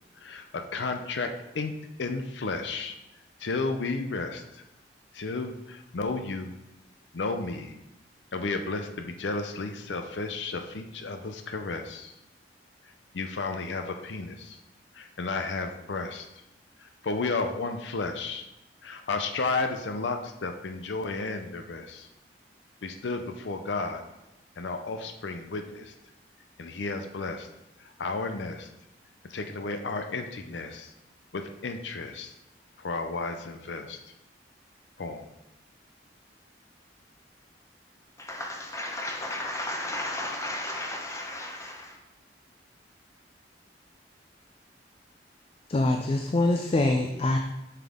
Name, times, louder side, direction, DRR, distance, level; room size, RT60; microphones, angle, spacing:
voice 1, 0.2-1.7 2.0-3.0 3.4-4.6 5.1-6.5 7.1-7.8 8.3-12.1 13.1-14.6 14.9-16.3 16.8-18.5 18.8-22.1 22.8-24.0 24.6-25.9 26.6-27.5 27.8-28.7 29.3-30.9 31.3-32.3 32.8-34.0 35.0-35.3, left 3 dB, 80° left, 0.6 m, -33 dB
voice 2, 38.3-41.8, left 1 dB, 15° left, 1.0 m, -34 dB
voice 3, 45.7-47.4, left 2 dB, 30° left, 0.4 m, -24 dB
7.4 x 5.7 x 3.6 m
head